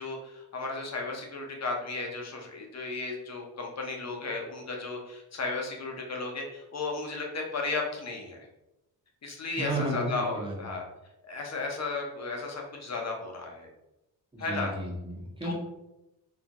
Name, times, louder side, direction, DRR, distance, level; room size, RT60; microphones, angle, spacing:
voice 1, 0.0-8.5 9.2-10.8 11.3-13.7 14.4-14.7 15.4-15.5, left 3 dB, 40° left, 1 dB, 0.9 m, -34 dB
voice 2, 9.6-10.7 14.3-15.5, right 1 dB, 15° right, -3 dB, 1.1 m, -33 dB
3.7 x 3.4 x 3.0 m, 0.94 s
cardioid pair, 120°, 40 cm